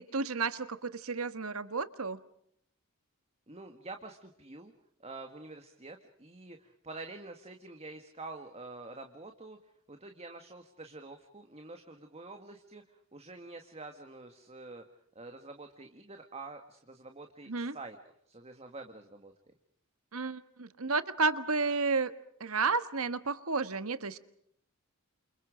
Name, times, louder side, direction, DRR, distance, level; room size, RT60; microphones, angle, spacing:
voice 1, 0.0-2.2 17.5-17.8 20.1-22.1 22.4-24.2, right 4 dB, 75° right, 13 dB, 1.5 m, -32 dB
voice 2, 3.5-4.7 5.0-9.6 9.9-14.8 15.1-18.0 18.3-19.3, right 3 dB, 30° right, 6 dB, 1.7 m, -47 dB
29.5 x 28.0 x 5.0 m, 0.69 s
head